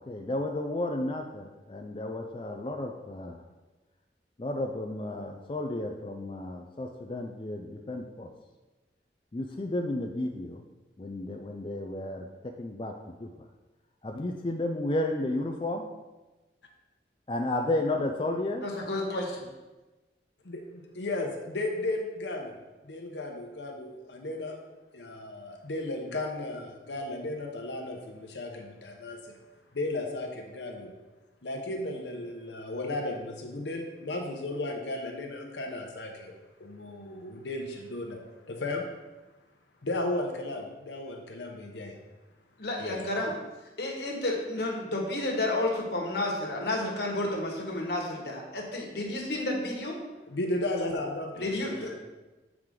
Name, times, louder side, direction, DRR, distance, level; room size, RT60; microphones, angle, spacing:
voice 1, 0.0-3.4 4.4-8.3 9.3-10.6 11.0-13.3 14.0-15.9 17.3-18.6, left 1 dB, 30° left, 3 dB, 0.4 m, -32 dB
voice 2, 18.6-19.4 42.6-43.3 43.8-50.0 51.3-51.9, left 2 dB, 70° left, 0 dB, 1.4 m, -31 dB
voice 3, 20.4-22.6 22.8-24.6 24.9-29.3 29.7-30.9 31.4-38.9 39.8-42.0 42.8-43.3 50.3-52.0, left 2 dB, 90° left, 2 dB, 0.8 m, -35 dB
7.3 x 4.8 x 3.8 m, 1.1 s
head